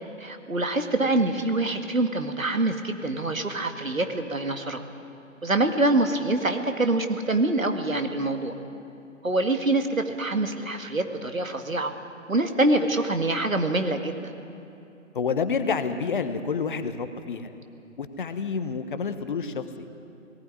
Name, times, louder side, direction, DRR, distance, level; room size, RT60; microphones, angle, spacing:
voice 1, 0.2-4.8 5.4-8.5 9.2-11.9 12.3-14.1, right 2 dB, 85° right, 6 dB, 2.0 m, -25 dB
voice 2, 15.1-17.5 18.0-19.9, left 5 dB, 40° left, 10 dB, 1.1 m, -29 dB
19.0 x 16.0 x 9.8 m, 2.8 s
figure-of-eight pair, 140°, 39 cm